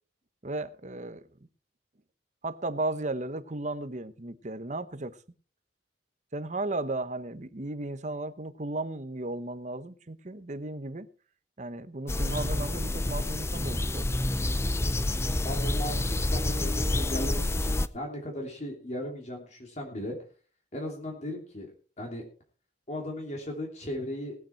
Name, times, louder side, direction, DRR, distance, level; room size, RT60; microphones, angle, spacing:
voice 1, 0.4-1.2 2.4-5.2 6.3-11.1 11.6-14.2, right 2 dB, 40° right, 1.0 m, -35 dB
sound 1, 12.1-17.9, left 1 dB, 15° left, 0.6 m, -28 dB
voice 2, 15.4-20.1 20.7-21.7 22.0-22.2 22.9-24.3, left 1 dB, 40° left, 3.1 m, -37 dB
19.0 x 9.0 x 4.6 m
head